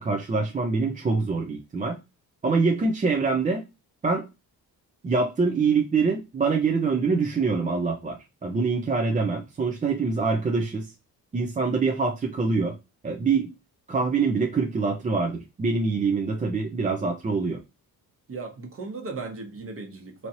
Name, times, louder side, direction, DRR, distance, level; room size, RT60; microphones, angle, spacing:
voice 1, 0.0-2.0 2.4-3.6 4.0-4.3 5.0-10.9 11.3-12.7 13.0-13.5 13.9-17.6, right 4 dB, 20° right, 0.5 m, -25 dB
voice 2, 18.3-20.3, right 3 dB, 40° right, 1.1 m, -36 dB
3.1 x 2.8 x 2.7 m
cardioid pair, 105°, 36 cm